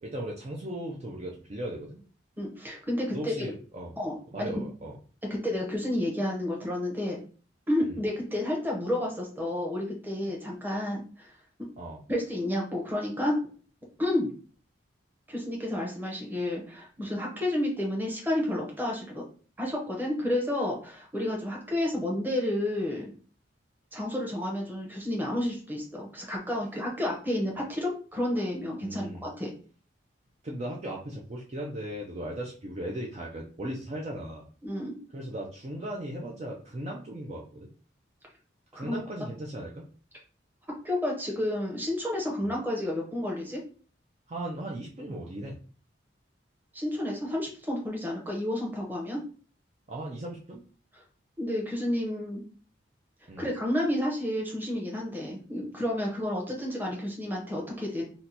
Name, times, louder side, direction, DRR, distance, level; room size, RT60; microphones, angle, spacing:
voice 1, 0.0-2.0 3.1-3.9 4.3-5.0 7.8-8.0 11.8-12.0 28.8-29.3 30.4-34.5 35.1-37.7 38.7-39.9 42.4-42.5 44.3-45.6 49.9-50.6 53.3-53.5, right 1 dB, 35° right, -2 dB, 0.4 m, -37 dB
voice 2, 2.4-3.5 4.0-4.5 5.3-7.2 7.7-11.3 12.1-13.4 14.0-14.3 15.3-19.2 19.6-23.1 23.9-29.5 34.6-34.9 38.7-39.0 40.8-43.6 46.7-49.2 51.4-52.4 53.4-58.0, left 1 dB, 10° right, -2 dB, 0.8 m, -30 dB
2.8 x 2.2 x 4.0 m, 0.41 s
head